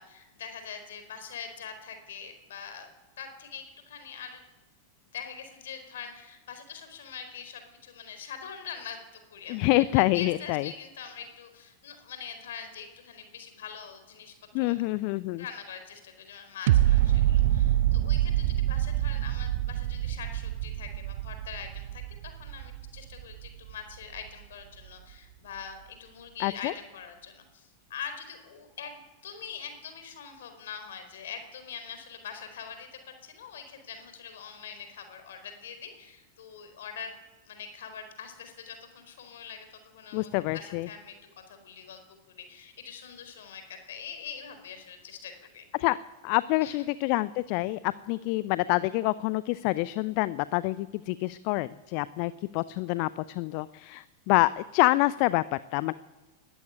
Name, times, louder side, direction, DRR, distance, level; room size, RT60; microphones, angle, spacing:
voice 1, 0.0-2.9 3.2-4.4 5.1-9.0 9.3-14.8 15.4-37.2 37.5-45.7 46.6-46.9, left 7 dB, 60° left, 8 dB, 4.5 m, -43 dB
voice 2, 9.5-10.7 14.5-15.4 26.4-26.7 40.1-40.9 45.7-46.0 46.2-55.9, left 19 dB, 45° left, 18 dB, 0.6 m, -27 dB
sound 1, 16.7-23.7 24.2-24.3, right 13 dB, 55° right, 0.7 m, -26 dB
20.0 x 14.5 x 9.6 m, 1.2 s
figure-of-eight pair, 90°, 0 cm